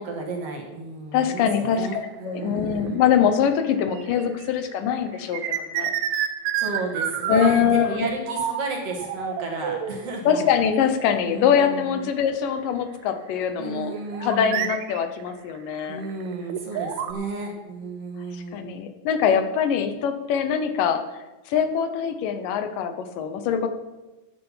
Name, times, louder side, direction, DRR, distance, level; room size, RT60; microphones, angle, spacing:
voice 1, 0.0-3.0 6.6-10.5 11.2-12.1 13.6-14.7 15.9-18.7, right 3 dB, 50° right, 1 dB, 2.6 m, -33 dB
voice 2, 1.1-5.9 7.3-8.1 10.3-13.9 14.2-16.0 18.3-21.0 21.5-23.7, left 8 dB, 85° left, 8 dB, 2.7 m, -23 dB
sound 1, 2.0-2.2 2.9-4.4 4.7-7.8 8.3-8.6 8.9-10.1 11.0-11.1 11.5-11.6 12.2-12.3 13.9-17.1, right 9 dB, 70° right, 2.0 m, -29 dB
13.0 x 9.2 x 5.7 m, 1.1 s
omnidirectional pair, 3.8 m